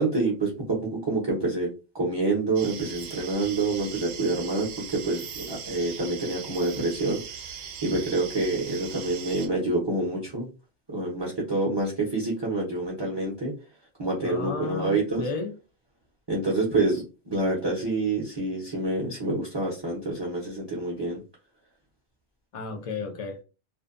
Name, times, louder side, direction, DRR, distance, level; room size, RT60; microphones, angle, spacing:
voice 1, 0.0-1.7 1.9-7.2 7.8-10.5 10.9-13.5 14.0-15.2 16.3-21.2, right 2 dB, 30° right, 0.6 m, -27 dB
sound 1, 2.6-9.5, right 7 dB, 75° right, 0.8 m, -40 dB
voice 2, 14.2-15.5 22.5-23.4, left 4 dB, 45° left, 0.4 m, -33 dB
2.6 x 2.1 x 2.4 m
omnidirectional pair, 1.1 m